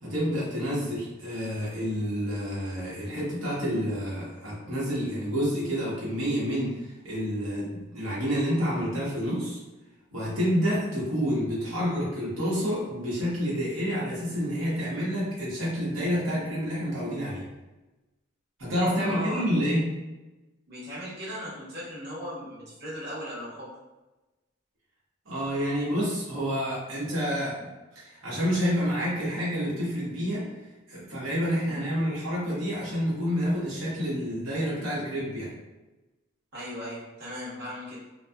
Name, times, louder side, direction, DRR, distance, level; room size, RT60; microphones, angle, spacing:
voice 1, 0.0-9.6 10.1-17.4 18.6-19.9 25.3-30.5 30.9-35.5, equal, 85° right, -7 dB, 0.9 m, -28 dB
voice 2, 19.0-19.6 20.7-23.7 31.6-31.7 36.5-38.0, equal, 55° right, -8 dB, 0.8 m, -37 dB
2.6 x 2.2 x 2.2 m, 1.1 s
head